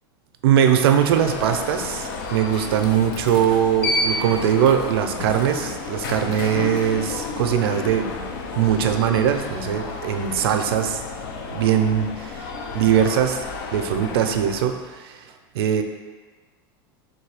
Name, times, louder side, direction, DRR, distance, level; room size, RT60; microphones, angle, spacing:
voice 1, 0.4-8.1 8.6-11.0 11.5-12.1 12.7-13.4 13.7-15.2 15.5-15.8, right 9 dB, 90° right, 6 dB, 0.5 m, -21 dB
Alarm, 0.9-14.8, left 3 dB, 65° left, 0.5 m, -31 dB
3.6 x 2.7 x 4.7 m, 1.4 s
supercardioid pair, 160°, 12 cm